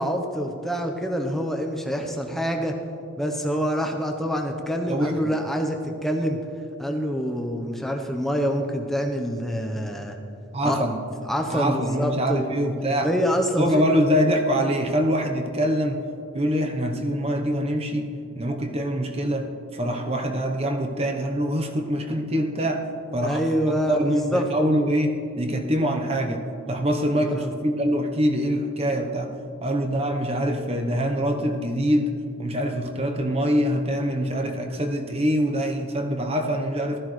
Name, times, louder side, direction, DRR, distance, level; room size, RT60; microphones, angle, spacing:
voice 1, 0.0-2.8 3.2-6.4 6.8-10.2 10.6-10.8 11.3-12.7 13.0-14.0 23.2-24.5 27.1-27.5, equal, ahead, 3 dB, 0.8 m, -26 dB
voice 2, 4.9-5.3 10.5-11.0 11.5-13.1 13.6-16.0 16.3-19.5 19.7-22.9 23.1-29.3 29.6-32.1 32.4-37.0, equal, 30° right, 4 dB, 0.9 m, -24 dB
15.5 x 13.5 x 3.2 m, 2.6 s
head